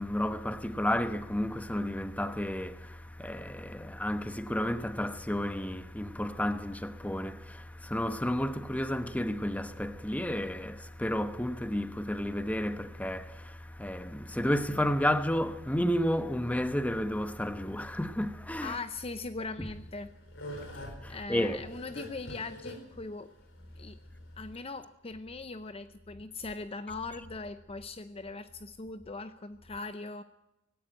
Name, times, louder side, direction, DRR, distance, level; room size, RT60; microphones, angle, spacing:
voice 1, 0.0-18.8 19.6-19.7 21.0-21.7, left 1 dB, 5° left, 1.0 m, -32 dB
voice 2, 18.6-20.1 21.1-23.3 23.8-24.0 24.4-30.2, left 3 dB, 30° left, 0.6 m, -40 dB
sound 1, 19.7-24.8, left 1 dB, 65° left, 5.0 m, -45 dB
18.5 x 16.5 x 9.3 m
head